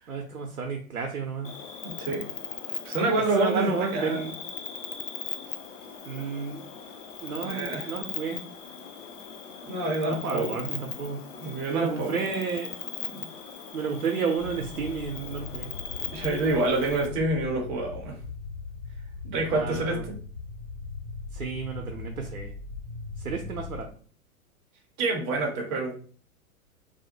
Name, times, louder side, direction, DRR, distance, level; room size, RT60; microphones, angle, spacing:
voice 1, 0.1-1.5 3.4-4.3 6.1-6.7 7.2-8.4 10.0-11.2 11.7-12.8 13.7-15.7 19.5-20.0 21.3-22.5 23.2-23.9, right 5 dB, 85° right, 2 dB, 0.5 m, -31 dB
Cricket, 1.4-17.1, left 7 dB, 60° left, 0.6 m, -39 dB
voice 2, 1.8-2.2 2.8-4.3 7.4-8.0 9.6-10.6 11.4-12.3 13.1-13.2 16.0-18.2 19.2-20.2 25.0-25.9, right 2 dB, 20° right, 0 dB, 0.4 m, -27 dB
sound 1, 14.4-23.8, left 4 dB, 85° left, 1.2 m, -40 dB
2.5 x 2.0 x 2.7 m, 0.43 s
figure-of-eight pair, 100°, 42 cm